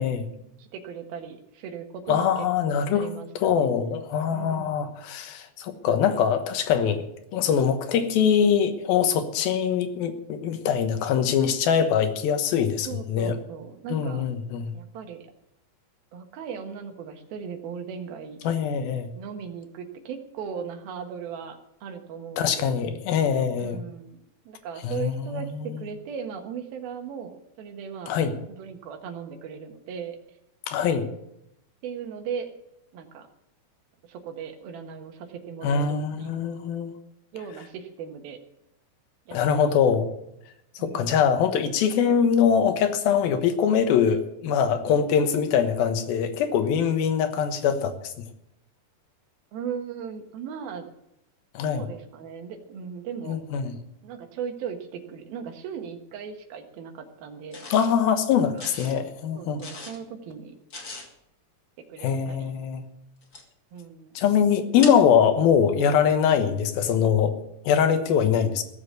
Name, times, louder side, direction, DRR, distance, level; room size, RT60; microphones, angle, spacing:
voice 1, 0.4-3.7 4.3-4.9 12.9-14.3 14.7-15.3 16.1-18.4 19.2-22.9 23.6-28.2 28.5-30.2 31.8-32.5 32.9-33.3 34.1-36.3 37.3-38.4 39.3-39.7 40.8-41.2 49.5-50.9 51.6-53.4 54.0-57.6 59.4-60.5 61.9-62.5 63.7-64.2, right 7 dB, 85° right, 5 dB, 3.3 m, -38 dB
voice 2, 2.1-3.1 3.4-7.0 7.3-13.4 13.9-14.7 18.4-19.1 22.4-23.8 24.8-25.8 28.1-28.3 30.7-31.1 35.6-36.9 39.3-40.1 40.8-48.1 51.5-51.9 53.3-53.7 57.7-59.6 62.0-62.8 64.2-67.3 67.7-68.6, left 7 dB, 80° left, 8 dB, 3.0 m, -23 dB
sound 1, 57.5-57.9 58.6-59.0 59.6-60.0 60.7-61.1 63.2-63.4 64.8-65.0, left 3 dB, 35° left, 1.4 m, -38 dB
16.5 x 7.4 x 8.2 m, 0.81 s
omnidirectional pair, 4.2 m